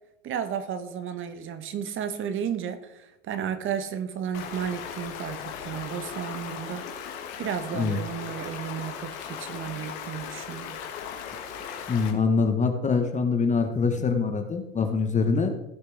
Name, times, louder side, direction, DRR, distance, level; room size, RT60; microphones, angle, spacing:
voice 1, 0.2-6.9 7.4-10.8, right 8 dB, 30° right, 11 dB, 1.1 m, -33 dB
Stream, 4.3-12.1, left 7 dB, 60° left, 2.1 m, -38 dB
voice 2, 11.9-15.5, left 4 dB, 20° left, 6 dB, 1.2 m, -24 dB
17.0 x 6.5 x 3.4 m, 0.90 s
hypercardioid pair, 100°, 38 cm